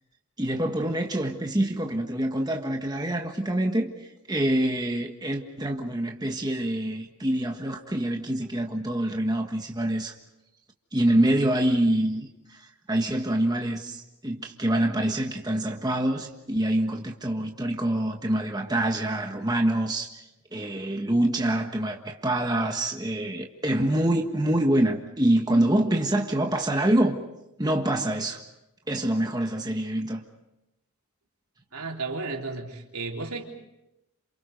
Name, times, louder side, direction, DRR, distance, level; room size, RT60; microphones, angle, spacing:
voice 1, 0.4-10.1 10.9-20.2 20.5-27.2 27.6-28.4 28.9-30.2, right 1 dB, 20° right, 1.5 m, -26 dB
voice 2, 31.7-33.4, right 3 dB, 90° right, 3.7 m, -33 dB
29.5 x 28.0 x 5.3 m
head